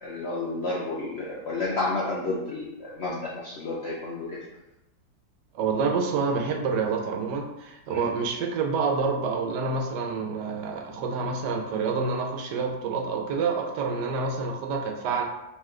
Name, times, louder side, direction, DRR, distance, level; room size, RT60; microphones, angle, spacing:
voice 1, 0.0-4.4 7.9-8.0, left 2 dB, 70° left, -4 dB, 0.6 m, -31 dB
voice 2, 5.5-15.2, right 4 dB, 85° right, 2 dB, 1.3 m, -28 dB
3.6 x 3.1 x 3.2 m, 0.92 s
omnidirectional pair, 1.8 m